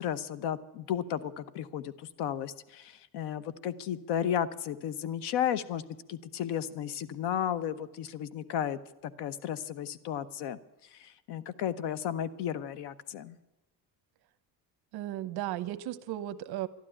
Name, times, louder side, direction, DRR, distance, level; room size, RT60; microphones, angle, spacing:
voice 1, 0.0-5.8 6.1-10.6 10.9-13.4, left 9 dB, 80° left, 16 dB, 1.0 m, -34 dB
voice 2, 14.9-16.7, right 13 dB, 70° right, 14 dB, 0.9 m, -35 dB
12.5 x 11.5 x 10.0 m, 0.99 s
cardioid pair, 175°, 40 cm